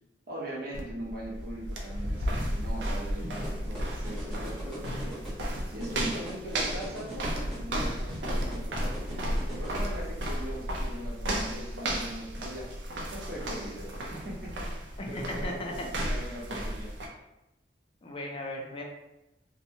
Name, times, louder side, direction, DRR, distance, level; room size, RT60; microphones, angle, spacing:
voice 1, 0.3-5.2 5.7-12.7 13.1-14.7 15.1-16.9, right 1 dB, 60° right, -4 dB, 0.8 m, -41 dB
sound 1, 0.7-17.1, equal, 85° right, 0.5 m, -33 dB
sound 2, 3.4-9.7, equal, ahead, 0.8 m, -42 dB
voice 2, 15.0-15.9 18.0-18.8, left 1 dB, 30° left, 0 dB, 0.4 m, -36 dB
2.7 x 2.2 x 2.7 m, 0.93 s
head